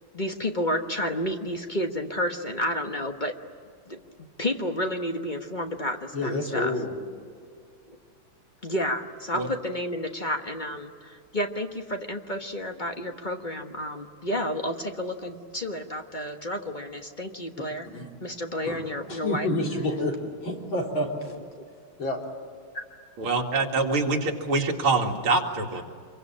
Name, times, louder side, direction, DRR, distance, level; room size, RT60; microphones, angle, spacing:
voice 1, 0.1-3.3 3.9-4.0 4.4-6.7 7.9-8.0 8.6-17.9 18.2-19.5 21.6-21.7, left 1 dB, 25° left, 4 dB, 1.2 m, -31 dB
voice 2, 6.1-6.9 17.9-18.1 18.6-21.3 22.0-22.2, left 1 dB, 65° left, 0 dB, 4.3 m, -29 dB
voice 3, 23.2-25.8, right 3 dB, 85° right, 2 dB, 3.1 m, -25 dB
26.0 x 23.5 x 8.8 m, 2.2 s
omnidirectional pair, 2.3 m